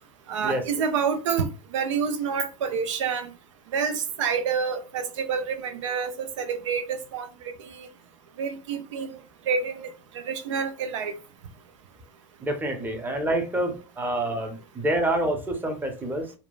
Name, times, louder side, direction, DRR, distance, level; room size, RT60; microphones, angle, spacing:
voice 1, 0.3-3.3 3.7-7.9 8.4-9.2 9.5-9.9 10.3-11.1, right 6 dB, 80° right, 0.4 m, -28 dB
voice 2, 12.4-16.3, right 1 dB, 10° right, 0.7 m, -27 dB
2.9 x 2.2 x 2.3 m
hypercardioid pair, 100°, 15 cm